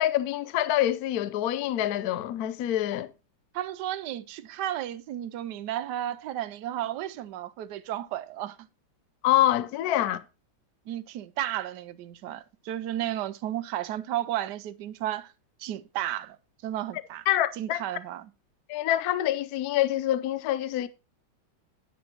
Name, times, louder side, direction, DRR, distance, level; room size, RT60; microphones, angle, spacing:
voice 1, 0.0-3.1 9.2-10.2 17.3-17.8 18.7-20.9, left 13 dB, 70° left, 0.9 m, -26 dB
voice 2, 3.5-8.7 10.9-15.3 15.6-16.4 16.6-17.2 17.5-18.3, right 12 dB, 70° right, 1.1 m, -33 dB
10.5 x 9.0 x 2.9 m
omnidirectional pair, 2.2 m